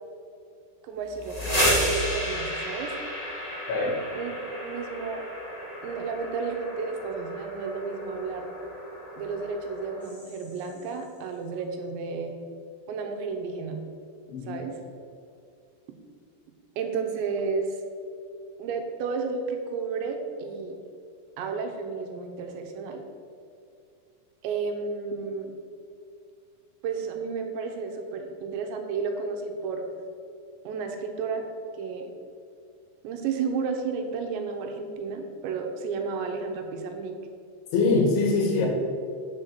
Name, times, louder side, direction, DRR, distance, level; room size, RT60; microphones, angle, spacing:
voice 1, 0.8-2.9 4.1-5.3 5.8-8.5 9.2-12.4 12.9-13.8 14.5-14.8 16.8-17.8 18.6-20.8 21.4-23.0 24.4-25.5 26.8-29.8 30.6-31.4 31.8-32.1 33.0-37.2, right 5 dB, 80° right, 4 dB, 3.0 m, -32 dB
sound 1, 1.1-10.8, equal, 30° left, 0.7 m, -32 dB
voice 2, 3.7-4.0 14.3-14.6 37.7-38.7, left 3 dB, 85° left, 1 dB, 4.0 m, -23 dB
9.1 x 5.6 x 6.7 m, 2.4 s
omnidirectional pair, 5.3 m